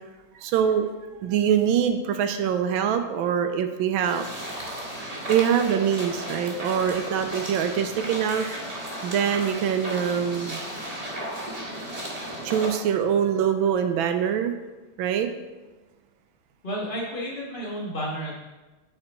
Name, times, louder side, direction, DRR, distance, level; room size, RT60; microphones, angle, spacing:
voice 1, 0.4-0.9 1.2-4.2 5.3-8.5 9.0-10.6 12.4-14.6 15.0-15.3, right 8 dB, 75° right, 7 dB, 1.3 m, -24 dB
sound 1, 4.0-12.8, right 1 dB, 20° right, 1.7 m, -34 dB
voice 2, 16.6-18.3, equal, 25° left, -4 dB, 1.7 m, -31 dB
8.8 x 5.0 x 4.4 m, 1.2 s
omnidirectional pair, 2.4 m